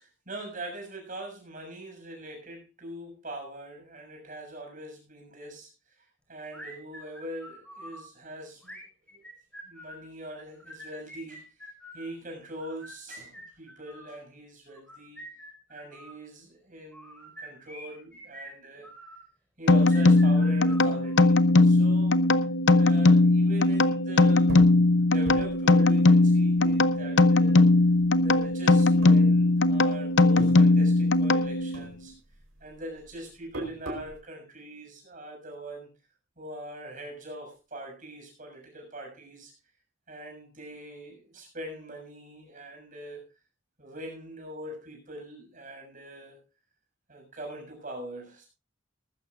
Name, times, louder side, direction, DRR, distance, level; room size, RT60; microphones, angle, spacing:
voice 1, 0.0-5.7 6.0-8.8 9.1-9.2 9.6-11.7 11.9-15.2 15.7-18.9 19.6-22.2 22.8-24.6 25.0-27.7 28.2-32.1 32.6-35.9 36.4-39.5 40.1-43.3 43.8-46.4 47.1-48.5, right 1 dB, 40° right, 2 dB, 6.9 m, -42 dB
sound 1, 6.5-8.0 8.6-10.1 10.5-12.1 12.6-14.2 14.8-16.2 16.9-19.2 19.8-21.3, equal, 5° left, 5.0 m, -46 dB
sound 2, 19.7-31.8, left 2 dB, 60° left, 0.7 m, -20 dB
sound 3, 24.5-27.4 27.7-28.5 28.9-29.9 30.1-31.5 31.7-34.2, equal, 90° right, 4.6 m, -40 dB
19.5 x 14.5 x 2.5 m, 0.27 s
head